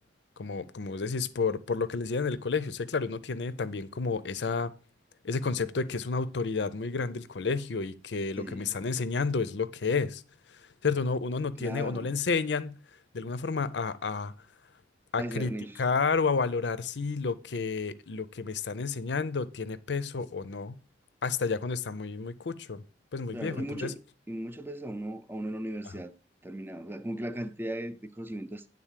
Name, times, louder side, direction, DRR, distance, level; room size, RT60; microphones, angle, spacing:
voice 1, 0.4-4.7 5.2-10.2 10.8-12.7 13.1-14.3 15.1-15.5 15.8-20.8 21.2-22.8 23.1-23.9 25.8-26.0, left 4 dB, 70° left, 0.6 m, -30 dB
voice 2, 8.4-8.7 11.6-12.1 15.2-15.8 23.3-24.0 24.3-26.1 26.4-28.7, right 1 dB, 10° right, 0.6 m, -37 dB
10.0 x 3.9 x 7.4 m
head